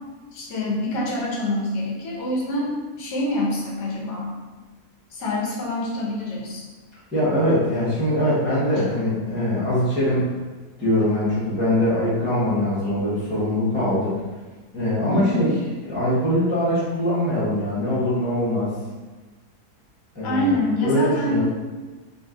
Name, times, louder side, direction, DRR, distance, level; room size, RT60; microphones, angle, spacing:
voice 1, 0.3-4.3 5.1-6.6 15.1-15.5 20.2-21.4, left 1 dB, 85° left, -3 dB, 1.4 m, -26 dB
voice 2, 7.1-10.3 10.8-14.1 14.7-15.5 15.9-18.7 20.1-20.5 20.8-21.4, left 1 dB, 10° right, -11 dB, 0.8 m, -22 dB
2.9 x 2.7 x 3.6 m, 1.3 s
omnidirectional pair, 1.7 m